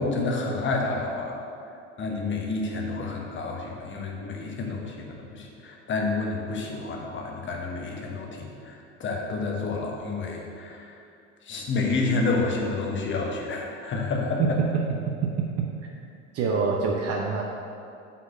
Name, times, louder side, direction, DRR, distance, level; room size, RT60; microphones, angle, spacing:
voice 1, 0.0-1.4 1.7-11.0 11.4-14.6, left 3 dB, 35° left, 0 dB, 1.2 m, -29 dB
voice 2, 16.3-17.4, right 5 dB, 45° right, -1 dB, 0.8 m, -25 dB
5.9 x 3.9 x 6.1 m, 2.5 s
hypercardioid pair, 75°, 36 cm